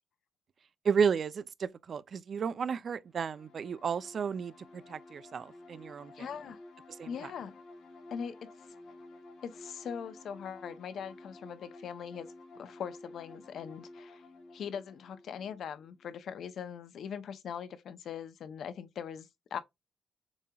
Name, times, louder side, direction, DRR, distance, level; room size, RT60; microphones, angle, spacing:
voice 1, 0.8-6.3 7.0-7.1, right 6 dB, 45° right, 0.4 m, -32 dB
sound 1, 3.1-16.6, left 2 dB, 80° left, 3.2 m, -53 dB
voice 2, 6.1-6.6 7.1-7.6 8.1-8.5 9.4-14.2 14.5-19.6, left 7 dB, 60° left, 0.6 m, -41 dB
7.0 x 2.8 x 2.3 m
cardioid pair, 155°, 0 cm